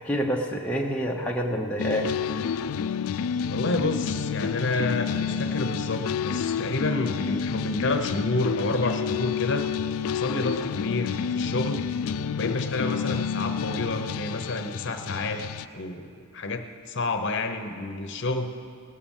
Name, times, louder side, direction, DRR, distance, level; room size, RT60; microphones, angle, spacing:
voice 1, 0.0-2.1, equal, 5° left, -1 dB, 0.8 m, -27 dB
sound 1, 1.8-15.7, left 7 dB, 70° left, 0.3 m, -29 dB
voice 2, 3.5-9.7 10.1-11.8 12.3-15.4 15.7-18.5, left 2 dB, 50° left, 6 dB, 0.9 m, -29 dB
18.5 x 6.8 x 7.3 m, 2.3 s
head